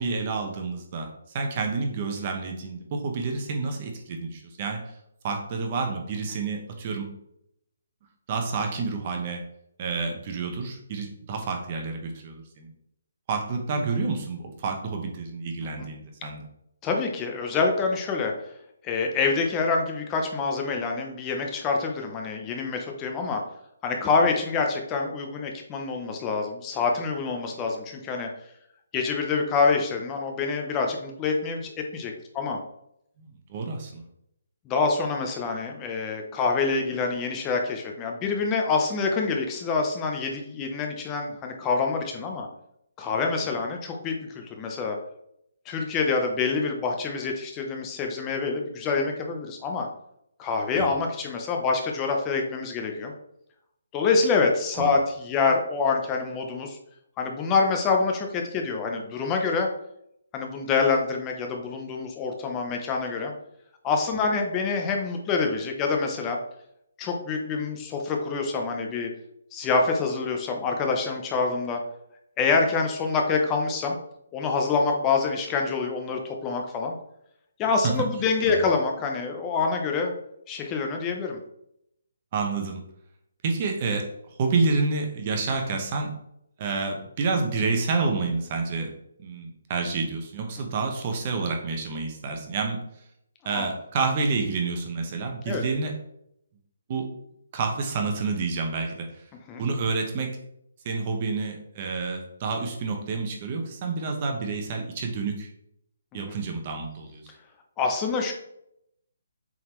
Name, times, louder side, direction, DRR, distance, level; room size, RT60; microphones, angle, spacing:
voice 1, 0.0-4.8 5.2-7.2 8.3-9.4 9.8-12.7 13.3-16.5 33.2-34.0 50.8-50.9 54.8-54.9 77.8-77.9 78.5-78.6 82.3-82.8 83.4-84.1 84.4-86.1 86.6-88.9 89.2-92.8 93.4-95.9 96.9-97.1 97.5-99.2 99.6-100.3 100.8-105.5 106.1-107.2, right 4 dB, 30° right, 3 dB, 1.1 m, -29 dB
voice 2, 16.8-18.3 18.8-23.4 23.8-28.3 28.9-32.6 34.7-42.5 43.0-45.0 45.7-49.9 50.4-53.1 53.9-56.8 57.2-59.7 60.3-63.3 63.8-66.4 67.0-69.1 69.5-71.8 72.4-74.0 74.3-76.9 77.6-80.1 80.5-81.4 93.5-93.7 95.5-95.6 99.5-99.6 106.1-106.4 107.8-108.3, left 4 dB, 15° left, 2 dB, 0.7 m, -26 dB
7.7 x 3.9 x 3.1 m, 0.77 s
hypercardioid pair, 165°, 0 cm